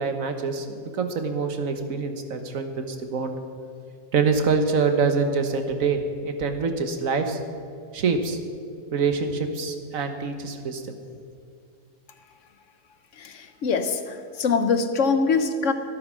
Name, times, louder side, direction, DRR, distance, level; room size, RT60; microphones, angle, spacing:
voice 1, 0.0-3.3 4.1-7.4 7.9-8.4 8.9-11.0, right 5 dB, 65° right, 7 dB, 1.5 m, -25 dB
voice 2, 13.2-15.7, left 5 dB, 60° left, 9 dB, 1.1 m, -23 dB
13.5 x 11.5 x 6.3 m, 2.3 s
omnidirectional pair, 1.5 m